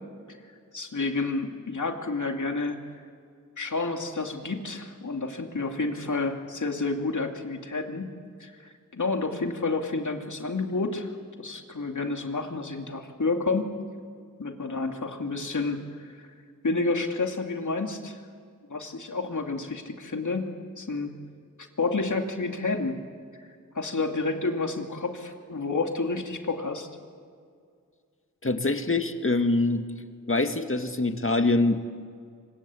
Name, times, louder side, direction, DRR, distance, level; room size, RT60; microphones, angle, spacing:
voice 1, 0.7-2.8 3.6-8.1 8.4-8.5 8.9-11.1 11.4-13.7 14.4-16.3 16.6-18.2 18.7-20.5 20.8-21.1 21.8-23.0 23.7-26.9, left 3 dB, 65° left, 4 dB, 2.7 m, -29 dB
voice 2, 28.4-29.8 30.3-31.8, left 2 dB, 40° left, 7 dB, 2.1 m, -24 dB
25.0 x 22.5 x 8.5 m, 2.2 s
cardioid pair, 40°, 32 cm